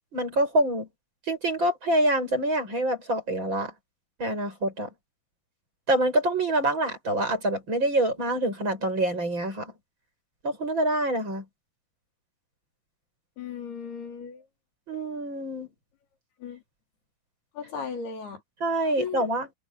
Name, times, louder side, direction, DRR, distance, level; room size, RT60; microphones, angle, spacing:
voice 1, 0.1-0.9 1.3-3.7 4.2-4.9 5.9-9.7 10.4-11.4 14.9-15.7 18.6-19.5, right 1 dB, 30° right, 8.7 m, -26 dB
voice 2, 13.4-14.4 16.4-16.6 17.6-18.4 19.0-19.2, left 6 dB, 90° left, 5.9 m, -36 dB
omnidirectional pair, 4.4 m